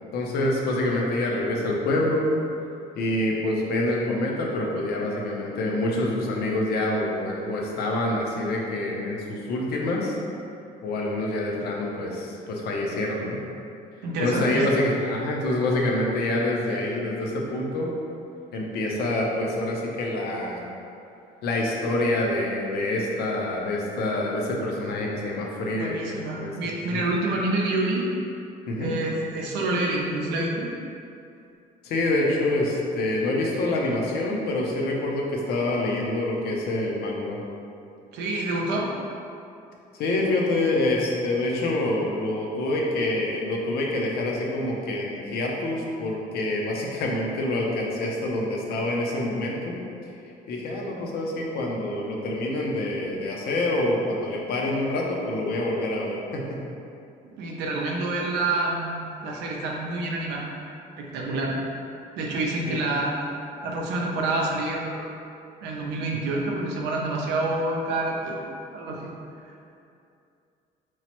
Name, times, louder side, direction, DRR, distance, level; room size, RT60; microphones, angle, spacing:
voice 1, 0.1-2.3 3.0-10.2 10.8-13.4 14.2-17.9 18.5-20.7 21.4-26.0 26.3-26.5 26.9-27.2 28.7-28.9 31.8-37.4 39.9-49.8 50.5-56.6 62.6-62.7, left 1 dB, 70° left, -1 dB, 0.5 m, -26 dB
voice 2, 14.0-14.7 25.8-28.1 28.8-30.7 38.1-38.9 57.2-59.0 59.2-60.4 61.0-61.5 62.2-63.1 63.6-65.1 65.6-68.4 68.7-69.1 69.5-69.6, right 2 dB, 85° right, -2 dB, 0.5 m, -27 dB
3.0 x 2.0 x 2.9 m, 2.6 s
cardioid pair, 110°, 17 cm